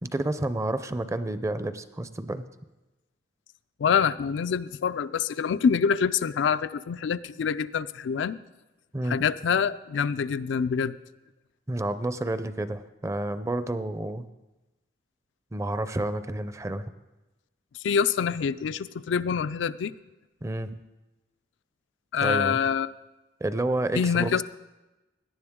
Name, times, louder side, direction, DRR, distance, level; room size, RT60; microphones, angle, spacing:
voice 1, 0.0-2.5 8.9-9.2 11.7-14.3 15.5-16.9 20.4-20.7 22.2-22.6 23.4-24.4, right 1 dB, 15° right, 12 dB, 0.5 m, -30 dB
voice 2, 3.8-8.4 9.0-11.0 17.8-19.9 22.1-22.9 23.9-24.4, left 6 dB, 90° left, 13 dB, 0.4 m, -26 dB
17.5 x 10.0 x 3.6 m, 1.1 s
head